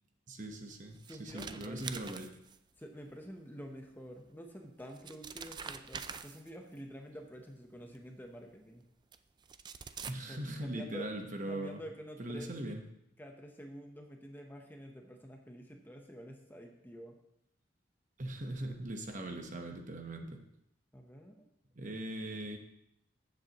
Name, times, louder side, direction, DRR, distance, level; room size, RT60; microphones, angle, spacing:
voice 1, 0.3-2.3 10.1-11.8 12.2-12.8 18.2-20.4 21.7-22.6, right 1 dB, 40° right, 4 dB, 1.1 m, -40 dB
sound 1, 0.7-2.8 4.2-4.3 4.8-6.8 7.9-8.0 9.1-9.2 9.4-10.1, right 6 dB, 25° right, 0.3 m, -45 dB
voice 2, 1.1-2.0 2.8-8.9 10.3-11.1 11.5-12.5 13.2-17.2 20.9-21.5, equal, 10° left, 3 dB, 0.9 m, -48 dB
14.5 x 7.5 x 3.0 m, 0.80 s
head